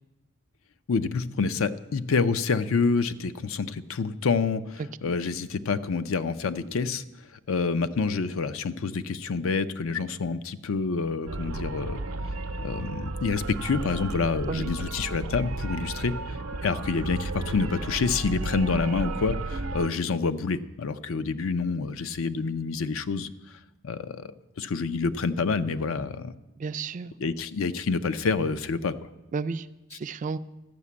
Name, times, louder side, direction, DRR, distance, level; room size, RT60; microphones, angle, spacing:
voice 1, 0.9-7.0 7.5-12.0 12.6-16.4 16.6-23.3 23.8-26.3 27.2-29.1, left 4 dB, 70° left, 12 dB, 0.5 m, -27 dB
sound 1, 11.3-19.9, right 2 dB, 90° right, 0.7 m, -33 dB
voice 2, 26.6-27.1 29.3-30.4, right 4 dB, 35° right, 13 dB, 0.3 m, -32 dB
12.5 x 5.9 x 8.4 m, 1.0 s
head